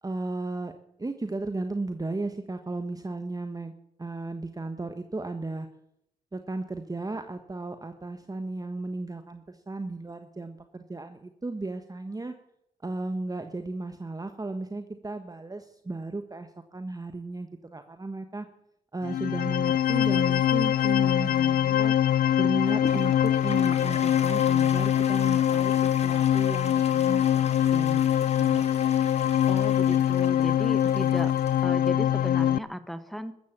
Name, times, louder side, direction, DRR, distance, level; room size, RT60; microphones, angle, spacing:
voice 1, 0.0-0.7 1.0-3.7 4.0-5.7 6.3-12.3 12.8-18.5 18.9-21.9 22.4-28.0 28.4-28.7, right 2 dB, 20° right, 8 dB, 1.3 m, -35 dB
sound 1, 19.0-32.6, left 10 dB, 55° left, 0.6 m, -23 dB
Toilet flush, 22.7-31.9, left 4 dB, 35° left, 2.2 m, -41 dB
voice 2, 29.5-31.3 31.6-33.3, equal, ahead, 12 dB, 1.4 m, -35 dB
14.5 x 13.0 x 7.3 m, 0.80 s
hypercardioid pair, 40°, 18 cm